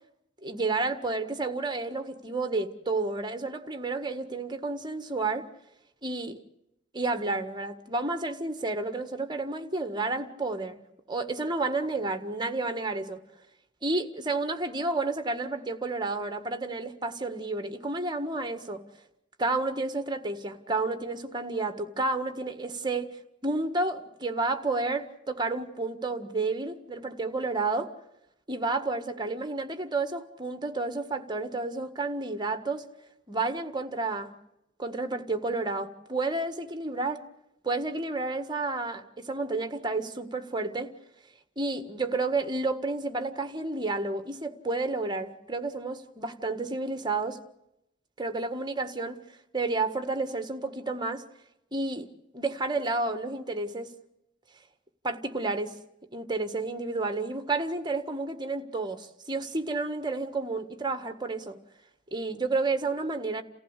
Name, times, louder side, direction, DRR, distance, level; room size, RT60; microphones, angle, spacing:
voice 1, 0.4-5.5 6.0-6.4 6.9-10.8 11.1-13.2 13.8-18.8 19.4-23.1 23.4-27.9 28.5-32.9 33.3-34.3 34.8-37.2 37.6-40.9 41.6-47.4 48.2-49.2 49.5-51.2 51.7-52.1 52.3-53.9 55.0-55.7 56.1-61.6 62.1-63.4, right 3 dB, 25° right, 1.6 m, -31 dB
29.0 x 15.5 x 8.2 m
head